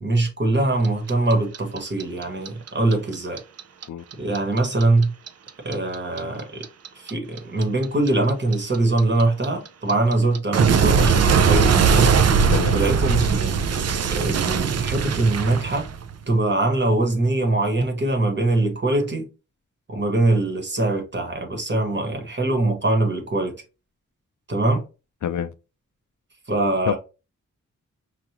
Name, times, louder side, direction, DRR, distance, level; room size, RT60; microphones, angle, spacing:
voice 1, 0.0-3.4 4.2-5.1 5.6-6.6 6.9-12.1 12.7-13.6 14.1-15.9 16.3-19.3 19.9-23.5 24.5-24.8 26.5-27.0, right 2 dB, 35° right, 1.2 m, -22 dB
Clock, 0.8-3.8 4.1-7.1 7.4-16.2, right 6 dB, 55° right, 0.4 m, -20 dB
voice 2, 3.9-4.0 12.5-12.8 25.2-25.5 26.9-27.0, left 9 dB, 70° left, 0.4 m, -26 dB
5.7 x 2.4 x 2.9 m
wide cardioid pair, 145°, 31 cm